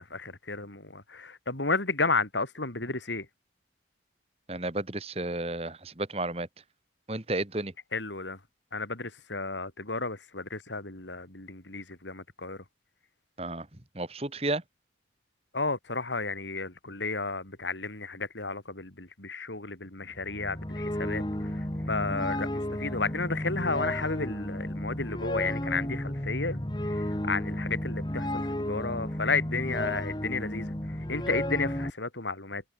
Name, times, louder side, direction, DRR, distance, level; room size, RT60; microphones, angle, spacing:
voice 1, 0.0-3.3 7.9-8.4 8.7-12.6 15.5-32.6, left 3 dB, 85° left, 4.4 m, -33 dB
voice 2, 4.5-6.5 7.1-7.7 13.4-13.7 14.0-14.6, right 2 dB, 35° right, 1.8 m, -32 dB
sound 1, 20.1-31.9, left 1 dB, 25° left, 1.6 m, -33 dB
head